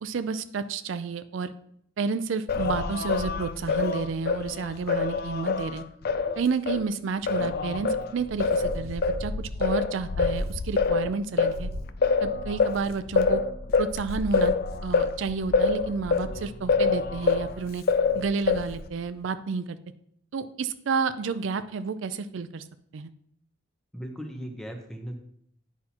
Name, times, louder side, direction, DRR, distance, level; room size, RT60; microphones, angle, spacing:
voice 1, 0.0-1.5 2.0-5.8 6.4-11.7 12.2-13.4 13.8-14.5 14.8-17.8 18.1-19.8 20.3-22.7 22.9-23.1, right 5 dB, 70° right, 12 dB, 0.4 m, -30 dB
Singing, 2.5-6.8 7.3-17.5 17.9-18.9, left 4 dB, 50° left, 0.4 m, -26 dB
voice 2, 23.9-25.2, equal, ahead, 3 dB, 0.8 m, -37 dB
9.7 x 5.6 x 2.9 m, 0.70 s
head